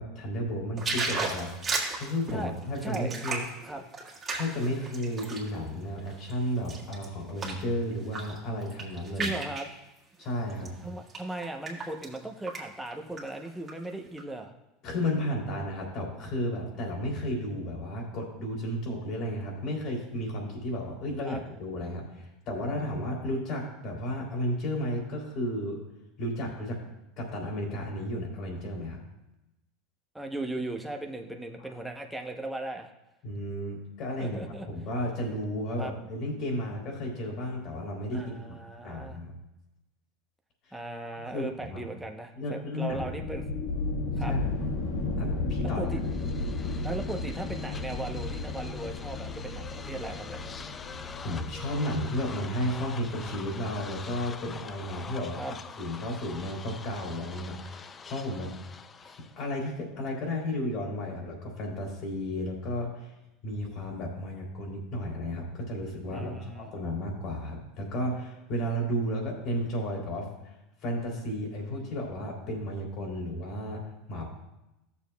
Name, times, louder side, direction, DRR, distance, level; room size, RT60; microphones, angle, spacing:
voice 1, 0.0-3.5 4.3-9.3 10.2-10.8 14.8-25.8 26.2-26.8 27.2-29.0 33.2-34.4 34.7-39.3 40.7-40.8 41.3-41.8 42.4-43.2 44.2-44.5 45.2-45.9 51.2-58.5 59.0-63.1 63.4-70.5 70.8-73.8 74.1-74.3, equal, 50° left, -1 dB, 2.9 m, -33 dB
sound 1, 0.8-5.5 6.0-7.7 8.0-8.4 8.6-9.7 10.5-10.7 11.1-12.2 12.5-12.6 12.9-13.7 14.2-14.3, right 3 dB, 25° right, 1.9 m, -34 dB
voice 2, 2.8-3.2 3.6-3.8 9.2-9.7 10.8-14.5 21.2-21.4 30.1-32.9 34.2-34.7 35.8-35.9 38.1-39.2 40.7-43.4 44.2-44.3 45.8-46.0 46.8-50.4 55.4-55.5 66.1-66.7, right 2 dB, 5° right, 2 dB, 0.8 m, -37 dB
sound 2, 42.9-54.3, left 3 dB, 70° left, 1.4 m, -34 dB
sound 3, 45.9-59.5, left 5 dB, 25° left, 0.4 m, -45 dB
14.0 x 7.1 x 2.3 m, 0.94 s
supercardioid pair, 125°, 0 cm